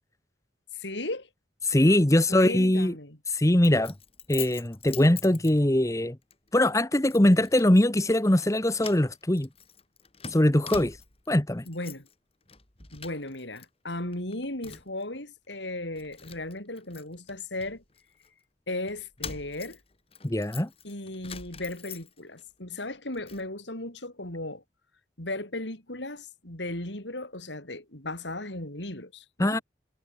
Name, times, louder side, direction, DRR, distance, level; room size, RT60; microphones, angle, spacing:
voice 1, 0.7-1.3 2.3-3.2 11.6-12.1 12.9-17.8 18.7-19.8 20.8-24.6 25.2-29.6, left 2 dB, 75° left, 6.3 m, -36 dB
voice 2, 1.6-2.9 3.3-3.9 4.3-6.2 6.5-9.5 10.3-11.0 11.3-11.6 20.2-20.7 29.4-29.6, left 1 dB, 15° left, 1.0 m, -22 dB
Keys jangling, 3.6-5.9 6.3-6.5 7.1-7.7 8.0-8.5 8.8-11.3 11.6-12.1 12.5-13.7 13.9-15.0 15.5-15.6 16.0-18.3 18.9-22.4 22.8-23.5, left 7 dB, 30° left, 3.2 m, -44 dB
head